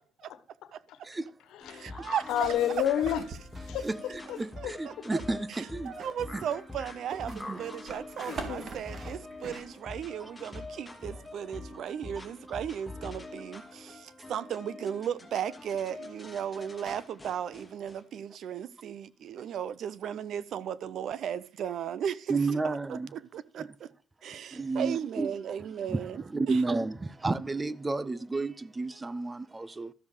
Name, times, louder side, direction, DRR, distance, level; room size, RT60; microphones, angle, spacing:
voice 1, 0.3-1.0 1.5-3.2 3.7-3.9 4.3-4.7 8.3-8.7, left 10 dB, 85° left, 1.4 m, -31 dB
sound 1, 1.6-18.0, left 2 dB, 10° left, 2.5 m, -45 dB
voice 2, 1.7-2.5 4.6-5.2 5.5-23.9 24.2-26.2 26.5-26.6, right 9 dB, 70° right, 0.7 m, -36 dB
sound 2, 2.3-4.5 5.8-9.6, right 4 dB, 50° right, 2.2 m, -45 dB
voice 3, 3.8-6.0 6.3-6.4 7.3-7.8 10.2-10.3 11.1-11.2 12.2-12.3 22.3-23.1 23.6-23.7 24.5-25.3 25.9-29.9, right 3 dB, 20° right, 0.7 m, -32 dB
13.0 x 7.2 x 5.0 m
cardioid pair, 90°, 0 cm